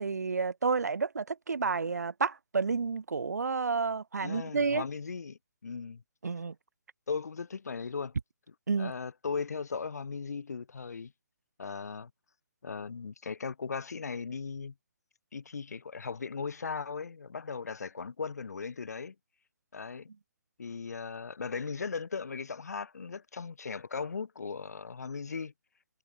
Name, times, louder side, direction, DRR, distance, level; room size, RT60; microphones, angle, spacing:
voice 1, 0.0-4.8 6.2-6.6 8.7-8.9, right 4 dB, 85° right, 0.5 m, -30 dB
voice 2, 4.2-6.0 7.1-8.1 8.8-11.1 11.6-12.1 12.6-14.7 15.3-19.1 19.7-20.1 20.6-25.5, left 5 dB, 75° left, 1.0 m, -37 dB
figure-of-eight pair, 140°, 9 cm